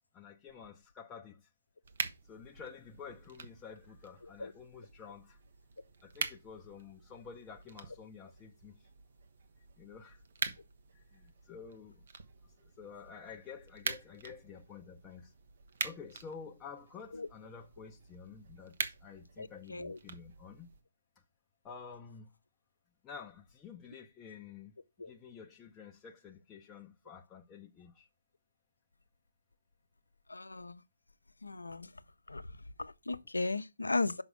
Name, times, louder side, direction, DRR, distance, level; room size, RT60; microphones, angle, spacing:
voice 1, 0.1-1.5 2.2-5.4 6.0-8.9 9.8-10.5 10.9-12.1 12.4-15.3 15.8-20.7 21.6-22.3 23.0-24.7 25.1-28.1, left 6 dB, 15° left, 0.7 m, -50 dB
sound 1, 1.8-20.8, right 5 dB, 50° right, 1.0 m, -45 dB
voice 2, 19.4-20.0 25.0-25.1 30.3-30.8 31.4-31.9 32.3-32.4 32.8-34.2, left 3 dB, 75° left, 0.7 m, -36 dB
6.2 x 5.0 x 5.0 m
figure-of-eight pair, 140°, 0 cm